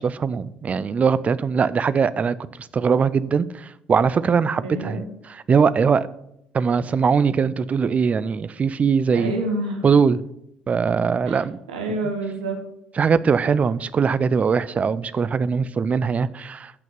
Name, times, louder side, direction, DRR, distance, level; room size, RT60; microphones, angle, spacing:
voice 1, 0.0-2.3 2.7-5.0 5.3-6.1 6.5-9.3 9.8-10.2 10.7-11.6 13.0-16.7, right 6 dB, 35° right, 0.5 m, -21 dB
voice 2, 4.5-5.1 9.1-9.8 11.2-11.4 11.7-12.6, right 2 dB, 75° right, 1.6 m, -28 dB
8.1 x 6.0 x 7.1 m
figure-of-eight pair, 50°, 4 cm